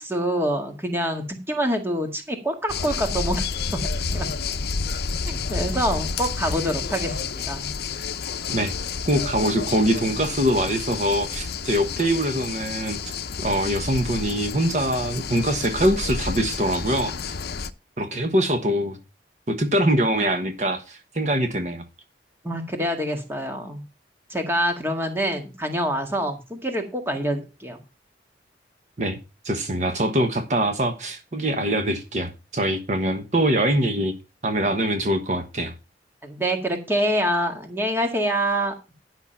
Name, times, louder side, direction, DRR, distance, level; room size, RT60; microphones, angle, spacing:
voice 1, 0.0-3.8 4.1-4.3 5.2-7.7 22.4-23.8 24.3-27.8 36.2-38.7, equal, 15° right, 4 dB, 1.9 m, -26 dB
sound 1, 2.7-17.7, left 5 dB, 60° left, 0.7 m, -30 dB
voice 2, 9.1-13.0 13.4-17.1 18.0-19.0 19.5-21.8 29.0-29.2 29.4-34.1 34.4-35.7, right 1 dB, 40° right, 6 dB, 1.3 m, -23 dB
11.0 x 6.0 x 5.7 m, 0.29 s
head